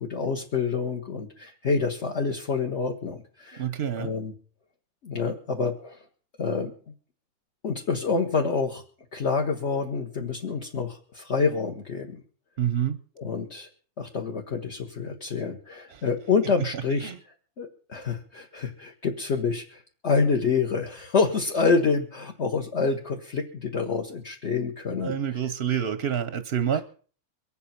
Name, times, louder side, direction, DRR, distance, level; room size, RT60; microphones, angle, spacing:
voice 1, 0.0-4.3 5.0-6.0 6.4-6.7 7.6-8.8 9.1-12.2 13.2-13.7 14.0-17.1 17.6-25.5 26.7-26.8, left 4 dB, 50° left, 1.5 m, -27 dB
voice 2, 3.6-4.1 12.6-13.0 17.0-17.1 25.0-26.8, right 9 dB, 50° right, 0.9 m, -27 dB
23.0 x 8.4 x 5.8 m
omnidirectional pair, 1.6 m